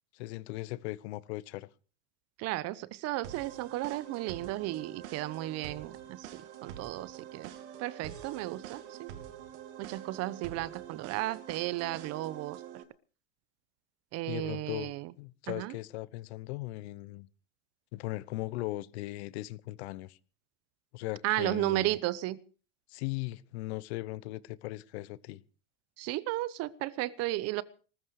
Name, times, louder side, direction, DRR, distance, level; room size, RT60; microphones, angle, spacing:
voice 1, 0.1-1.7 14.3-14.9 15.2-17.3 17.9-20.2 20.9-21.9 22.9-25.4, left 18 dB, 65° left, 1.1 m, -38 dB
voice 2, 2.4-7.5 7.8-9.1 9.8-12.6 14.1-15.1 15.5-15.7 21.2-22.4 26.0-27.6, right 17 dB, 45° right, 1.0 m, -34 dB
sound 1, 3.2-12.8, right 10 dB, 75° right, 2.8 m, -46 dB
19.5 x 14.5 x 4.9 m
supercardioid pair, 120°, 35 cm